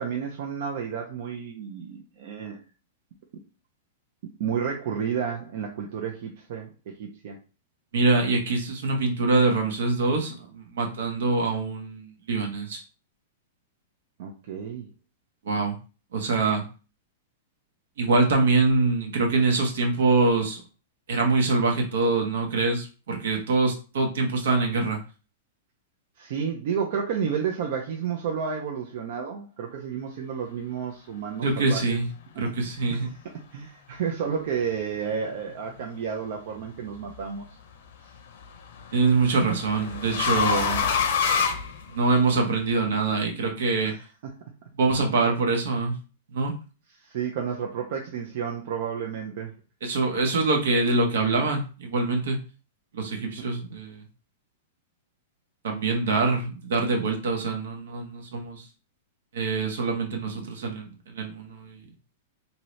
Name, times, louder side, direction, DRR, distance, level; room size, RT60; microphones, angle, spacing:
voice 1, 0.0-2.6 4.4-7.4 14.2-14.9 26.2-32.0 32.6-33.1 33.5-37.4 40.3-40.5 43.8-44.0 44.2-44.3 47.0-49.5, right 7 dB, 60° right, 1 dB, 0.5 m, -31 dB
voice 2, 7.9-12.8 15.4-15.8 16.1-16.6 18.0-20.6 21.1-25.0 31.4-32.1 32.4-33.1 38.9-40.9 41.9-44.0 44.8-45.9 46.3-46.5 49.8-52.4 52.9-54.0 55.6-58.7 59.3-61.8, right 3 dB, 80° right, 3 dB, 1.0 m, -24 dB
sound 1, 36.5-37.0 38.4-42.4, left 6 dB, 65° left, 0.6 m, -27 dB
2.8 x 2.7 x 3.1 m, 0.34 s
hypercardioid pair, 145°, 0 cm